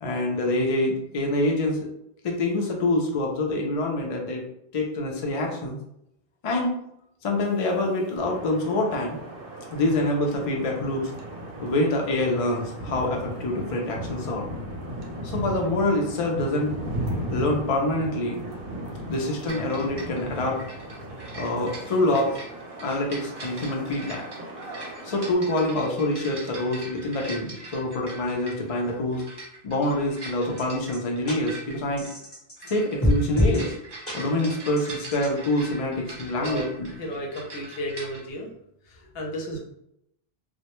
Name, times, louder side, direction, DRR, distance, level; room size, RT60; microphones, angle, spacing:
voice 1, 0.0-1.9 2.2-4.4 4.7-5.8 6.4-6.7 7.2-9.2 9.7-11.1 11.6-14.5 15.2-16.8 17.3-18.4 19.1-20.6 21.3-22.4 22.8-24.2 25.0-29.2 29.6-32.1 32.6-33.7 34.1-36.9, left 1 dB, 50° left, 1 dB, 0.4 m, -26 dB
sound 1, 8.2-25.3, right 1 dB, 70° right, 0.7 m, -36 dB
sound 2, 19.5-38.2, right 2 dB, 35° right, 0.4 m, -42 dB
sound 3, 30.6-30.7 30.9-31.0 31.3-31.4 32.0-32.7 33.0-33.6 34.1-34.2 34.8-35.3, left 1 dB, 15° left, 0.9 m, -24 dB
voice 2, 36.4-36.7 37.0-38.5 38.9-39.6, equal, 75° left, 0 dB, 0.8 m, -33 dB
2.1 x 2.0 x 2.9 m, 0.77 s
omnidirectional pair, 1.0 m